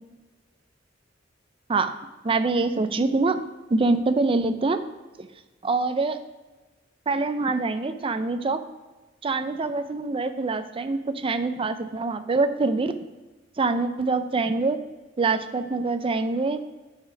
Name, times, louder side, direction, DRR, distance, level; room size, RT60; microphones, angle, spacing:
voice 1, 2.2-3.4 3.7-4.8 5.2-5.3 5.6-6.2 7.1-8.6 9.2-12.9 13.6-14.8 15.2-16.6, right 3 dB, 30° right, 10 dB, 0.5 m, -24 dB
6.0 x 5.8 x 5.0 m, 1.2 s
head